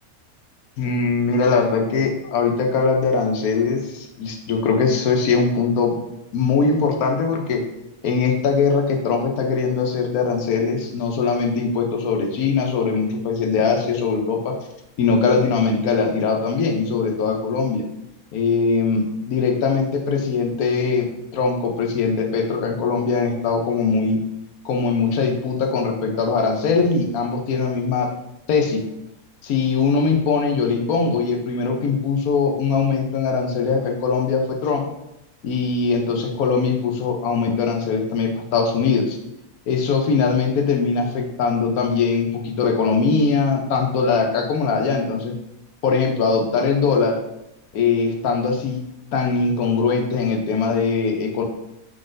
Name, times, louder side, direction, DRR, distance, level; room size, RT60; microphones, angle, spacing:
voice 1, 0.8-6.0 6.3-7.6 8.0-14.6 15.0-17.8 18.3-24.2 24.6-28.1 28.5-28.9 29.4-34.9 35.4-39.2 39.7-45.4 45.8-47.2 47.7-48.8 49.1-51.4, left 5 dB, 80° left, 2 dB, 1.2 m, -21 dB
5.2 x 3.8 x 2.6 m, 0.86 s
omnidirectional pair, 1.5 m